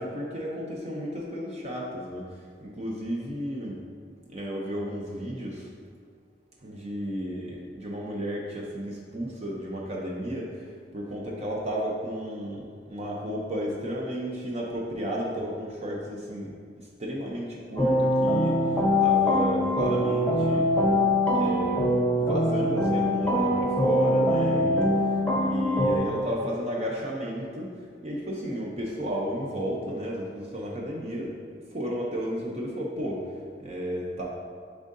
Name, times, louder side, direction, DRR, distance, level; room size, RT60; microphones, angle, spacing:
voice 1, 0.0-2.2 2.6-3.8 4.3-5.7 6.6-10.6 10.9-16.5 17.0-18.6 19.0-20.7 21.3-21.9 22.2-24.9 25.4-27.7 28.0-31.3 31.7-33.2 33.6-34.3, equal, 40° right, -2 dB, 0.7 m, -32 dB
sound 1, 17.8-26.0, left 1 dB, 10° left, 0.8 m, -23 dB
10.0 x 3.6 x 2.6 m, 2.1 s
head